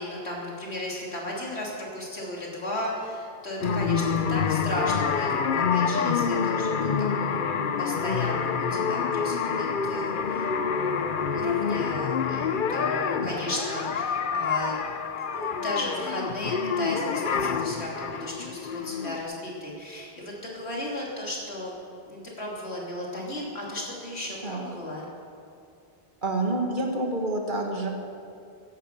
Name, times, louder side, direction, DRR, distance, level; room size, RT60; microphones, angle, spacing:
voice 1, 0.0-14.7 15.3-21.7 22.1-25.1, left 1 dB, 85° left, -3 dB, 3.5 m, -35 dB
sound 1, 3.6-19.2, left 6 dB, 55° left, 0.8 m, -27 dB
voice 2, 26.2-27.9, right 2 dB, 50° right, 1 dB, 2.0 m, -28 dB
15.5 x 11.0 x 6.7 m, 2.6 s
omnidirectional pair, 1.1 m